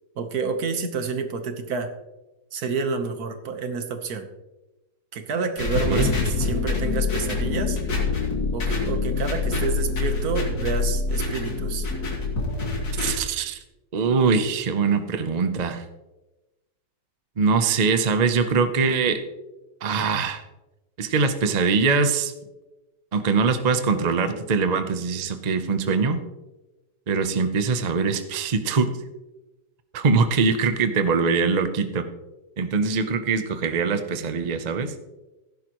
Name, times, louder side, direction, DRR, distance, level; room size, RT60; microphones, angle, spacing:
voice 1, 0.2-1.9 2.5-4.3 5.1-7.8 8.5-11.9, right 5 dB, 60° right, 7 dB, 1.6 m, -29 dB
sound 1, 5.6-13.1, left 4 dB, 85° left, 3.3 m, -25 dB
voice 2, 13.0-13.6 13.9-15.8 17.4-19.2 19.8-20.4 21.0-22.3 23.1-26.2 27.1-28.9 29.9-32.1 32.6-34.9, right 5 dB, 45° right, 8 dB, 0.5 m, -22 dB
16.0 x 10.5 x 3.0 m, 1.0 s
omnidirectional pair, 1.9 m